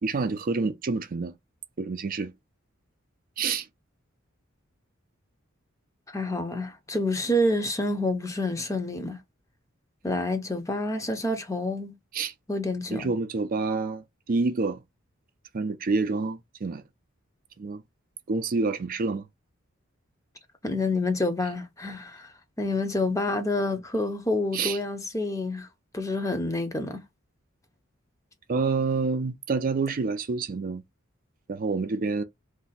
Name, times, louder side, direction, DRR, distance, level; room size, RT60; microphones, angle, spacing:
voice 1, 0.0-1.3 1.8-2.3 3.4-3.7 12.1-12.3 12.9-14.8 15.5-16.8 17.6-17.8 18.3-19.3 24.5-24.8 28.5-30.8 31.5-32.2, right 4 dB, 45° right, 0.4 m, -28 dB
voice 2, 6.1-9.2 10.0-11.9 12.5-13.1 20.6-25.7 25.9-27.0, left 1 dB, 15° left, 0.6 m, -28 dB
2.6 x 2.2 x 3.9 m
head